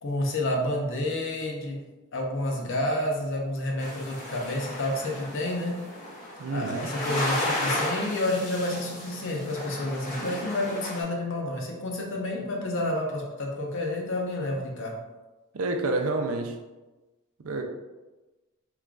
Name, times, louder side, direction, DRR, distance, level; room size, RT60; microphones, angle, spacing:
voice 1, 0.0-1.8 2.1-5.7 6.5-14.9, left 1 dB, 60° left, 0 dB, 0.7 m, -29 dB
sound 1, 3.8-11.0, left 1 dB, 40° left, 1.3 m, -33 dB
voice 2, 6.4-6.9 15.5-16.6 17.4-17.6, right 2 dB, 70° right, 4 dB, 0.5 m, -28 dB
3.6 x 3.1 x 2.4 m, 1.1 s
head